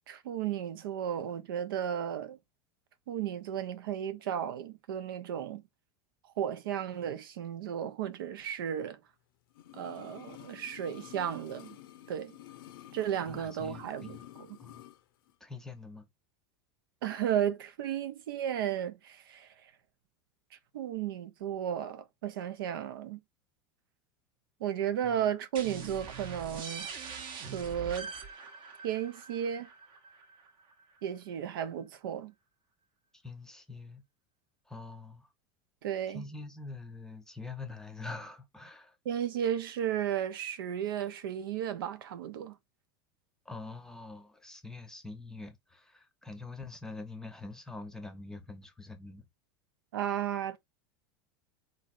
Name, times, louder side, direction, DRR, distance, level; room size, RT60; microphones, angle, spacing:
voice 1, 0.1-2.4 3.1-5.6 6.4-9.0 9.7-11.8 12.1-12.4 12.9-14.6 17.0-19.7 20.7-23.2 24.6-26.9 27.5-28.1 28.8-29.7 31.0-32.3 35.8-36.2 39.0-42.5 49.9-50.6, right 9 dB, 90° right, 0.7 m, -34 dB
sound 1, 9.5-15.0 15.3-15.4, left 13 dB, 85° left, 0.6 m, -50 dB
voice 2, 13.3-14.3 14.6-14.8 15.4-16.1 25.0-25.2 33.2-34.0 34.7-35.3 36.1-39.0 43.5-49.3, left 3 dB, 5° left, 0.7 m, -44 dB
sound 2, 25.5-31.0, right 6 dB, 45° right, 0.8 m, -43 dB
3.9 x 3.0 x 2.5 m
supercardioid pair, 130°, 12 cm